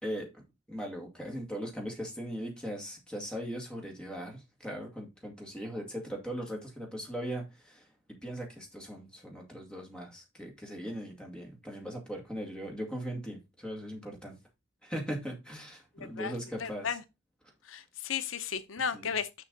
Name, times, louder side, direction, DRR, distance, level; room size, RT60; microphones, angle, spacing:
voice 1, 0.0-7.9 8.2-14.4 14.8-17.0 18.9-19.1, equal, 5° left, 2.1 m, -39 dB
voice 2, 16.0-16.3 16.6-17.0 17.7-19.3, left 7 dB, 90° left, 0.7 m, -34 dB
6.7 x 5.9 x 3.9 m
head